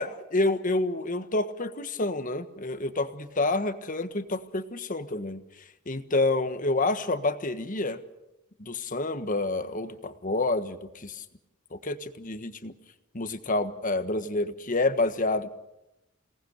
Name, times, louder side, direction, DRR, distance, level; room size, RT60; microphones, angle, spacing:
voice 1, 0.0-5.4 5.9-8.0 8.6-11.2 11.7-12.7 13.1-15.5, left 2 dB, 40° left, 10 dB, 1.5 m, -28 dB
28.5 x 19.0 x 6.6 m, 0.93 s
head